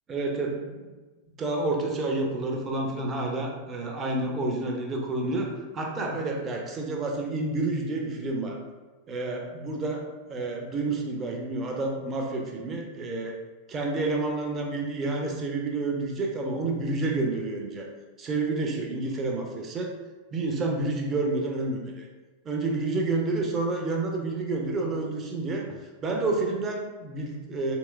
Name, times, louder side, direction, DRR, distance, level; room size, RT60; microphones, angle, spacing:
voice 1, 0.1-0.8 1.4-8.6 9.1-10.0 10.3-13.3 13.7-17.9 18.2-19.9 20.3-22.0 22.5-25.7 26.0-27.8, right 2 dB, 25° right, 0 dB, 0.5 m, -29 dB
3.1 x 2.9 x 2.3 m, 1.3 s
figure-of-eight pair, 90°, 0 cm